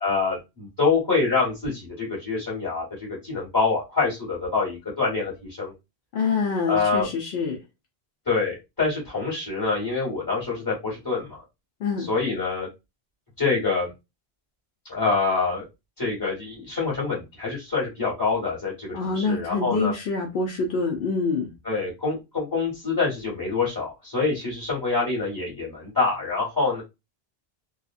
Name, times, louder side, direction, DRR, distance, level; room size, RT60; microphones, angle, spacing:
voice 1, 0.0-2.8 3.2-5.3 5.6-5.7 6.7-7.1 8.3-11.4 12.1-12.7 13.4-13.9 14.9-15.6 16.0-19.9 21.6-26.8, left 4 dB, 20° left, 1.4 m, -25 dB
voice 2, 6.1-7.6 11.8-12.1 18.9-21.5, left 4 dB, 80° left, 0.9 m, -26 dB
2.8 x 2.3 x 2.4 m
omnidirectional pair, 1.0 m